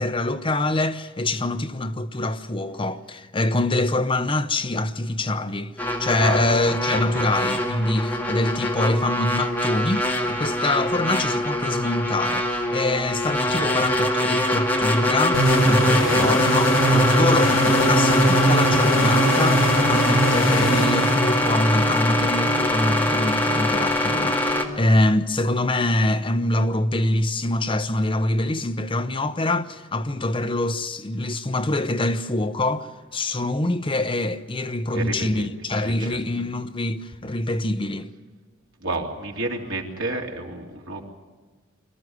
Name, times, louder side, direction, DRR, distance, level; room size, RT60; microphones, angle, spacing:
voice 1, 0.0-5.7 6.0-38.1, left 2 dB, 25° left, 0.8 m, -24 dB
sound 1, 5.8-24.7, left 1 dB, 10° left, 2.2 m, -23 dB
voice 2, 6.9-7.2 13.5-13.8 15.9-16.2 17.0-17.3 34.9-35.5 35.8-36.2 38.8-41.1, right 2 dB, 80° right, 3.2 m, -31 dB
sound 2, 15.3-21.8, right 1 dB, 70° left, 3.7 m, -21 dB
25.0 x 14.0 x 9.6 m
head